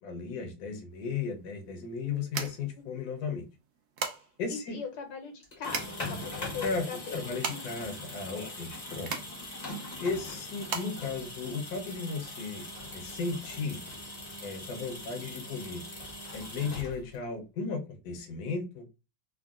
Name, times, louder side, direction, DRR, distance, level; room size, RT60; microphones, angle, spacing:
voice 1, 0.0-3.4 4.4-4.8 6.6-9.1 10.0-12.6 12.9-13.8 14.4-15.8 16.3-18.8, left 4 dB, 65° left, 3 dB, 1.1 m, -35 dB
sound 1, 0.9-12.1, right 5 dB, 70° right, 0.7 m, -40 dB
voice 2, 4.5-7.2 7.5-7.6 8.3-8.5, left 6 dB, 80° left, 4 dB, 1.6 m, -40 dB
sound 2, 5.4-17.3, left 1 dB, 40° left, 0.6 m, -41 dB
3.6 x 2.2 x 2.3 m, 0.28 s
omnidirectional pair, 1.9 m